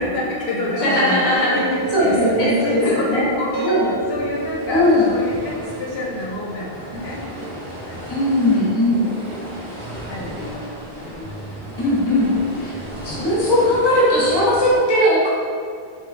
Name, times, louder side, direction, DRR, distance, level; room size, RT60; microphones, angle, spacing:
voice 1, 0.0-3.8 4.1-7.2 7.9-8.4 10.1-11.7 12.9-13.2, left 2 dB, 75° left, -4 dB, 0.8 m, -27 dB
voice 2, 0.8-1.5 1.9-2.8 3.1-3.3 3.6-3.9 4.7-5.1 8.1-9.0 11.8-12.3 12.6-12.7 13.0-15.3, left 1 dB, 25° left, -7 dB, 0.7 m, -18 dB
sound 1, 1.1-14.8, equal, 40° right, 0.7 m, -36 dB
sound 2, 1.3-10.5, right 3 dB, 65° right, 0.9 m, -32 dB
3.0 x 2.3 x 2.5 m, 2.1 s
omnidirectional pair, 1.0 m